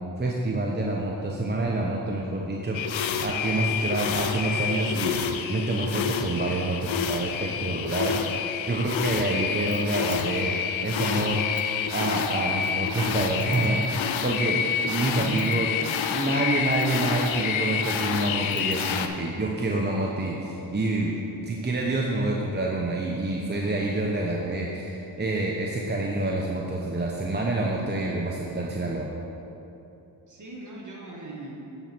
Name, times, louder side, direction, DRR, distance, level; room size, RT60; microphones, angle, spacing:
voice 1, 0.2-5.2 5.5-11.4 11.9-15.7 16.1-21.1 21.5-29.1, right 2 dB, 20° right, -2 dB, 0.8 m, -27 dB
sound 1, 2.7-19.1, left 7 dB, 80° left, 0.6 m, -28 dB
sound 2, 9.6-10.3 11.0-11.9 12.6-14.2 15.0-15.8 16.5-17.6 18.2-19.0, equal, ahead, 0.5 m, -46 dB
voice 2, 15.1-16.0 21.2-21.3 24.2-24.3 26.5-26.7 27.6-27.8 30.3-31.5, right 1 dB, 40° right, -2 dB, 1.9 m, -40 dB
8.8 x 4.3 x 6.0 m, 2.9 s
supercardioid pair, 45°, 46 cm